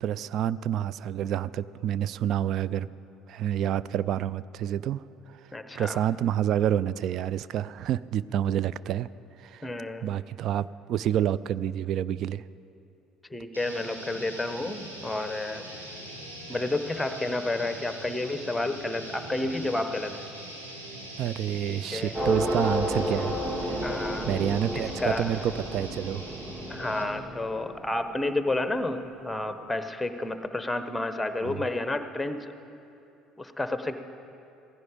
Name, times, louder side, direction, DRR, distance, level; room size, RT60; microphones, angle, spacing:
voice 1, 0.0-2.9 3.3-5.0 5.3-5.4 5.8-9.1 9.4-9.7 10.0-12.4 21.2-23.3 23.6-23.9 24.3-26.2 31.4-31.6, right 10 dB, 50° right, 18 dB, 0.3 m, -28 dB
voice 2, 5.5-6.0 9.6-10.1 13.3-15.9 16.5-20.2 21.7-22.1 23.8-24.3 24.7-25.3 26.7-32.6 33.4-33.9, left 2 dB, 10° left, 9 dB, 1.0 m, -31 dB
sound 1, 13.5-27.2, right 1 dB, 85° right, 1.8 m, -42 dB
sound 2, 22.1-29.0, equal, 25° right, 2.4 m, -32 dB
17.0 x 15.5 x 5.1 m, 2.8 s
figure-of-eight pair, 55°, 0 cm